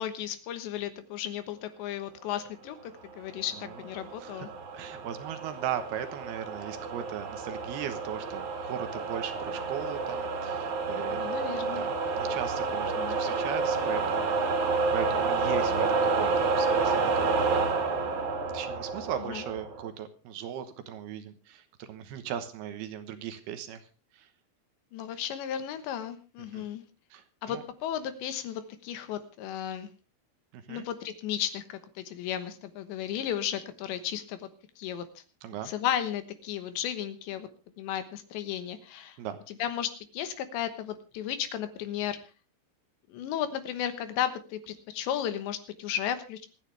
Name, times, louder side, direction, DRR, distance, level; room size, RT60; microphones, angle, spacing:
voice 1, 0.0-4.5 11.1-11.8 13.0-13.2 19.3-19.4 24.9-26.8 27.4-29.9 30.7-34.5 34.8-35.2 35.6-37.5 37.8-39.2 39.5-42.2 43.1-46.5, left 10 dB, 75° left, 11 dB, 3.3 m, -34 dB
sound 1, 3.4-19.9, right 4 dB, 45° right, 3.4 m, -29 dB
voice 2, 4.7-11.3 11.6-14.3 14.9-17.5 18.5-23.8 24.1-24.3 26.5-26.7 27.1-27.6 30.5-30.9 35.4-35.7 39.2-39.4, right 9 dB, 70° right, 10 dB, 2.7 m, -38 dB
25.5 x 9.9 x 3.3 m, 0.32 s
omnidirectional pair, 5.6 m